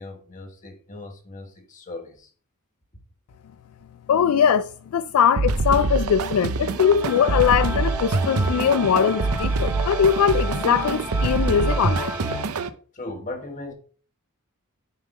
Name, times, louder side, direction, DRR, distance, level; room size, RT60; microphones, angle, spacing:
voice 1, 0.0-2.3 12.9-13.7, left 2 dB, 35° left, 1.5 m, -37 dB
voice 2, 4.1-12.1, left 7 dB, 75° left, 0.3 m, -21 dB
sound 1, 5.4-12.7, right 3 dB, 75° right, 0.7 m, -25 dB
sound 2, 7.0-12.4, left 1 dB, 10° right, 1.0 m, -34 dB
9.4 x 3.7 x 4.9 m
head